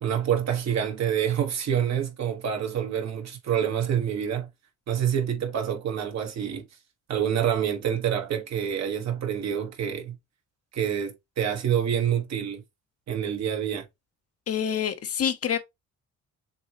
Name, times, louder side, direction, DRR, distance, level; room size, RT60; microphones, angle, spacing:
voice 1, 0.0-4.5 4.9-6.6 7.1-10.1 10.7-12.6 13.1-13.8, right 9 dB, 60° right, 1.4 m, -27 dB
voice 2, 14.5-15.6, left 8 dB, 50° left, 0.9 m, -27 dB
6.8 x 2.3 x 2.9 m
cardioid pair, 90°, 30 cm